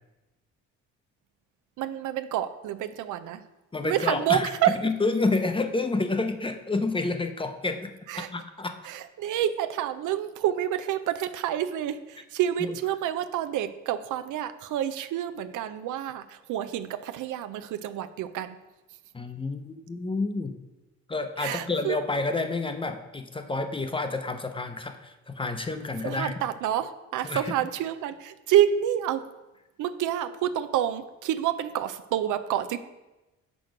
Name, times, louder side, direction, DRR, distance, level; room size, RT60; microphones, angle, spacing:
voice 1, 1.8-3.4 3.8-4.8 8.1-8.3 8.8-18.6 21.4-22.0 26.0-29.2 29.8-32.8, right 11 dB, 80° right, 10 dB, 0.6 m, -28 dB
voice 2, 3.7-4.5 4.8-8.8 12.6-12.7 19.1-20.6 21.1-26.3 27.2-27.5, left 3 dB, 15° left, 8 dB, 0.7 m, -29 dB
6.2 x 5.9 x 5.1 m, 1.0 s
cardioid pair, 90°, 30 cm